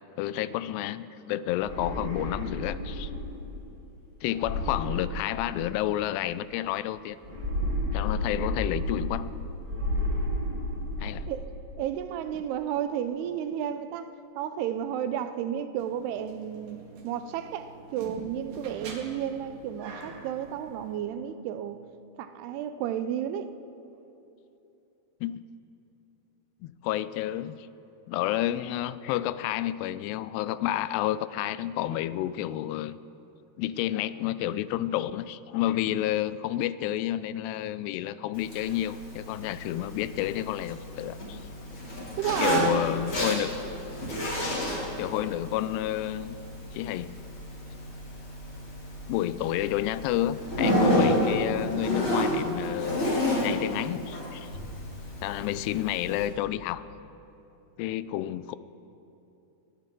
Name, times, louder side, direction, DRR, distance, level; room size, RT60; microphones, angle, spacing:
voice 1, 0.2-3.1 4.2-7.2 7.9-9.3 11.0-11.3 25.2-25.4 26.6-27.7 28.1-33.0 33.6-41.4 42.4-43.6 45.0-46.4 46.7-47.2 49.1-53.1 53.4-54.5 55.2-56.8 57.8-58.6, left 13 dB, 85° left, 2.6 m, -30 dB
sound 1, 1.5-3.4 4.3-5.8 7.2-9.3 9.6-11.3, left 1 dB, 10° right, 4.6 m, -31 dB
voice 2, 11.8-14.1 14.4-21.8 22.2-23.5 42.2-42.9, right 10 dB, 80° right, 2.6 m, -32 dB
sound 2, 15.8-21.0, right 3 dB, 60° right, 3.2 m, -45 dB
Zipper (clothing), 38.3-56.3, left 1 dB, 35° left, 3.6 m, -31 dB
20.0 x 19.5 x 3.8 m
omnidirectional pair, 4.8 m